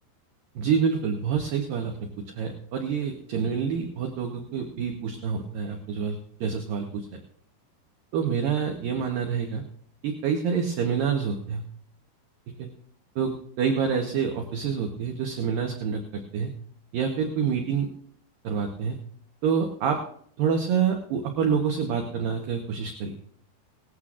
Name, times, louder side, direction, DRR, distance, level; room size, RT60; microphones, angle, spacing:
voice 1, 0.6-2.1 2.4-7.2 8.1-9.6 10.0-11.6 12.6-12.7 13.2-16.5 16.9-17.9 18.4-19.0 19.4-20.0 20.4-23.1, right 6 dB, 70° right, 3 dB, 2.3 m, -27 dB
18.5 x 14.5 x 2.5 m, 0.63 s
omnidirectional pair, 5.0 m